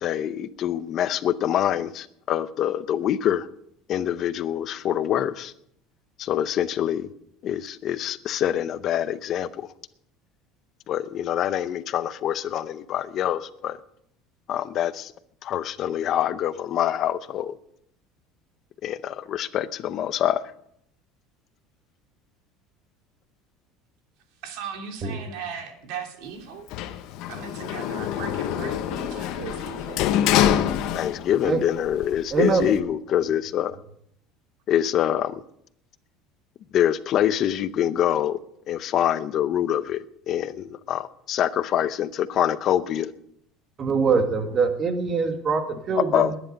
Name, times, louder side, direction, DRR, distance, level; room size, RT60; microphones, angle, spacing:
voice 1, 0.0-3.5 3.9-5.5 6.2-7.1 7.4-9.7 10.9-13.8 14.5-15.1 15.4-17.6 18.8-20.4 30.9-33.8 34.7-35.4 36.7-38.4 38.7-43.1 45.9-46.4, left 10 dB, 35° left, 0.6 m, -25 dB
voice 2, 24.4-26.7 27.3-30.0, right 7 dB, 65° right, 2.8 m, -37 dB
Sliding door, 26.7-31.5 31.9-32.8, left 11 dB, 55° left, 1.1 m, -25 dB
voice 3, 32.3-32.7 43.8-46.3, right 4 dB, 25° right, 1.6 m, -23 dB
20.0 x 10.5 x 5.2 m
cardioid pair, 170°, 0 cm